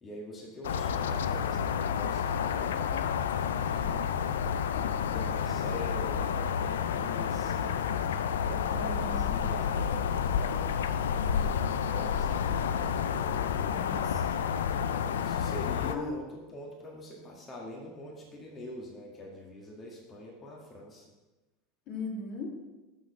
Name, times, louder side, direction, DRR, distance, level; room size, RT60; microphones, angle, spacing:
voice 1, 0.0-3.1 3.4-4.1 4.9-7.8 8.4-11.0 11.3-13.2 14.9-21.1, left 1 dB, 30° left, -2 dB, 2.0 m, -45 dB
sound 1, 0.6-16.0, left 7 dB, 80° left, 0.4 m, -30 dB
voice 2, 8.7-9.5 13.6-14.4 15.8-16.1 21.9-22.5, left 2 dB, 55° left, -2 dB, 2.5 m, -39 dB
6.7 x 6.1 x 6.3 m, 1.1 s
hypercardioid pair, 85°, 0 cm